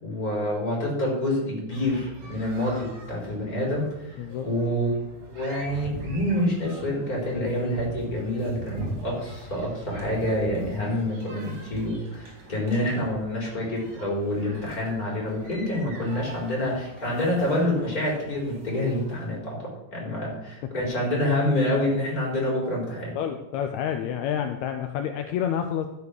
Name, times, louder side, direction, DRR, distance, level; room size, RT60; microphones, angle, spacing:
voice 1, 0.0-4.1 4.4-4.9 5.3-19.6 19.9-23.1, left 1 dB, 25° left, -3 dB, 4.8 m, -27 dB
sound 1, 1.7-19.3, right 1 dB, 50° right, 4.4 m, -42 dB
voice 2, 23.2-25.9, left 9 dB, 75° left, 6 dB, 1.8 m, -28 dB
12.5 x 7.0 x 6.6 m, 0.94 s
omnidirectional pair, 3.7 m